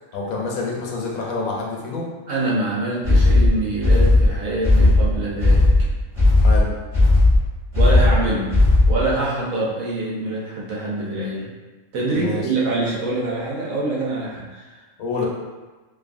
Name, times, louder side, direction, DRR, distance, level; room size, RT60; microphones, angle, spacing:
voice 1, 0.1-2.1 6.4-6.7 12.1-12.4 15.0-15.3, left 4 dB, 80° left, -2 dB, 1.0 m, -27 dB
voice 2, 2.3-5.7 7.8-8.6 8.9-11.5 11.9-14.8, right 2 dB, 80° right, -5 dB, 1.1 m, -25 dB
sound 1, 3.0-9.1, left 2 dB, 30° right, 0.8 m, -15 dB
2.6 x 2.4 x 2.5 m, 1.3 s
omnidirectional pair, 1.4 m